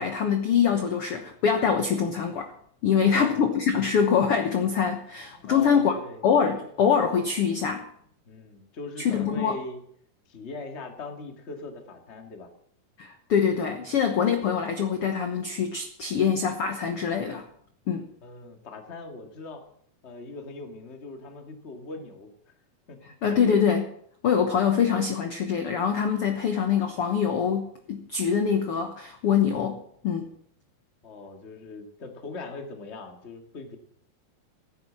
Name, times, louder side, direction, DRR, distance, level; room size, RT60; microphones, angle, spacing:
voice 1, 0.0-2.5 2.8-5.9 6.2-7.8 9.0-9.5 13.0-17.4 17.9-18.1 23.2-23.9 24.2-30.3, left 7 dB, 65° left, 6 dB, 1.5 m, -24 dB
voice 2, 3.1-3.5 5.3-6.2 6.5-6.7 8.3-9.8 10.3-12.5 18.2-19.6 20.0-22.5 22.9-23.1 31.0-33.8, left 3 dB, 30° left, 4 dB, 1.4 m, -40 dB
15.0 x 9.8 x 7.4 m, 0.65 s
omnidirectional pair, 4.2 m